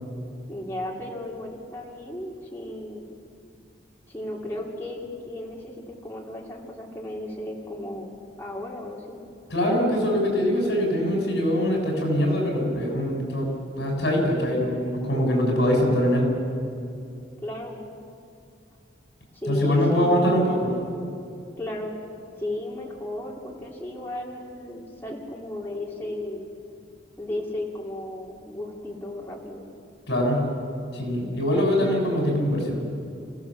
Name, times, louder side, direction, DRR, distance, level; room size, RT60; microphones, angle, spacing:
voice 1, 0.5-3.0 4.1-9.2 15.6-16.0 17.4-18.0 19.3-20.5 21.6-21.9 22.4-26.5 27.2-29.7, left 1 dB, 10° left, -3 dB, 2.8 m, -34 dB
voice 2, 9.5-13.5 13.8-16.3 19.5-20.7 30.1-30.4 30.9-32.9, equal, 65° left, 0 dB, 6.8 m, -23 dB
28.0 x 16.0 x 7.4 m, 2.5 s
head